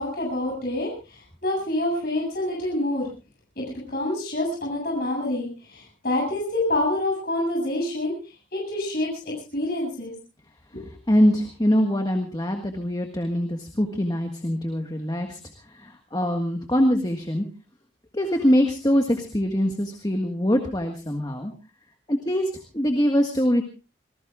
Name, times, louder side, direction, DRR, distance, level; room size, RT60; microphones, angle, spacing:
voice 1, 0.0-3.1 3.6-8.1 8.5-10.1 10.7-10.8, left 1 dB, 50° left, -2 dB, 7.8 m, -27 dB
voice 2, 11.1-15.4 15.7-17.4 18.1-21.5 22.1-23.6, equal, 20° left, 4 dB, 1.6 m, -23 dB
27.0 x 19.5 x 2.4 m, 0.32 s
head